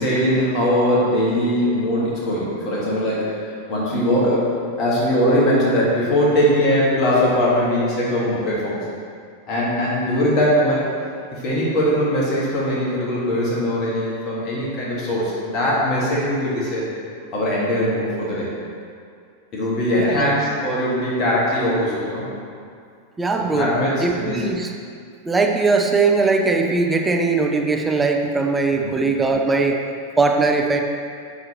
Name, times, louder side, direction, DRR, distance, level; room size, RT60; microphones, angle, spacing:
voice 1, 0.0-8.8 9.5-10.9 11.3-16.9 17.3-18.5 19.5-22.3 23.4-24.5 28.7-28.9, equal, 35° left, -7 dB, 1.6 m, -21 dB
voice 2, 20.0-20.4 23.2-23.7 24.0-24.7 25.3-29.8 30.2-30.8, right 3 dB, 10° right, 3 dB, 0.5 m, -20 dB
6.7 x 6.0 x 3.0 m, 2.3 s
figure-of-eight pair, 90°, 0 cm